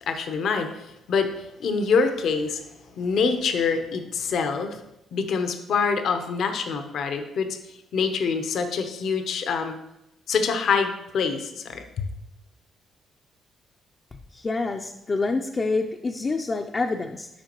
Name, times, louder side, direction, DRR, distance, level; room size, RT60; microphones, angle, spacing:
voice 1, 0.1-2.6 3.0-4.8 5.1-7.6 7.9-9.8 10.3-12.1, left 5 dB, 70° left, 7 dB, 0.8 m, -25 dB
voice 2, 14.1-17.3, left 3 dB, 30° left, 3 dB, 0.5 m, -27 dB
11.5 x 5.0 x 3.0 m, 0.89 s
cardioid pair, 90°, 0 cm